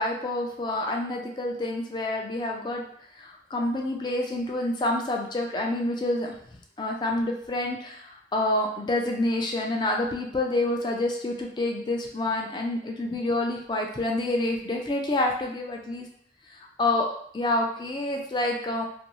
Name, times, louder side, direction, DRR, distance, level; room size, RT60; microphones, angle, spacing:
voice 1, 0.0-2.8 3.2-6.3 6.8-16.1 16.5-18.9, left 1 dB, 25° left, 1 dB, 0.3 m, -28 dB
2.5 x 2.2 x 2.9 m, 0.64 s
head